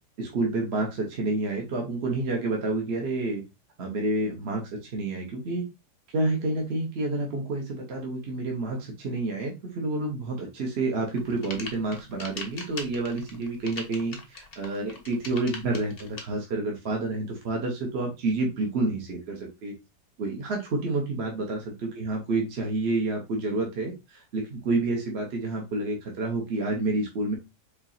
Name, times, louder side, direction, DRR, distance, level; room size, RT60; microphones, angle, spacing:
voice 1, 0.2-3.4 3.8-4.6 4.9-5.6 6.1-19.7 20.2-27.3, right 2 dB, 45° right, 0 dB, 1.0 m, -29 dB
sound 1, 11.1-16.2, left 3 dB, 45° left, 0.9 m, -39 dB
4.7 x 3.1 x 2.7 m, 0.24 s
omnidirectional pair, 1.8 m